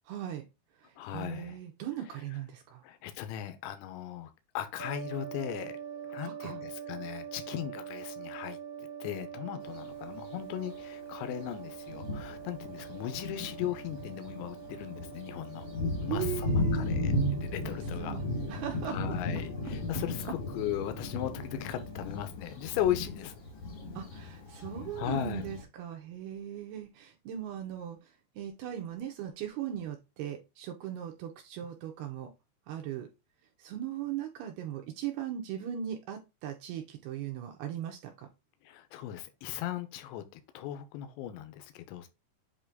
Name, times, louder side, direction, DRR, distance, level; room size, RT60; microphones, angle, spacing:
voice 1, 0.1-0.4 0.8-2.8 6.2-6.6 16.1-16.9 17.6-18.2 18.5-19.2 23.9-32.3 32.7-33.1 33.6-38.3, right 10 dB, 75° right, 2.6 m, -39 dB
voice 2, 1.0-1.6 2.8-5.8 6.1-8.6 9.0-15.7 16.0-17.1 17.4-18.2 18.9-23.3 25.0-25.5 38.6-42.1, left 11 dB, 85° left, 2.9 m, -37 dB
sound 1, 4.8-22.1, right 8 dB, 40° right, 1.6 m, -45 dB
Thunder, 9.6-9.8 10.7-10.8 11.4-11.5 11.9-25.6, left 1 dB, 55° left, 1.3 m, -35 dB
8.2 x 3.0 x 3.8 m
omnidirectional pair, 5.3 m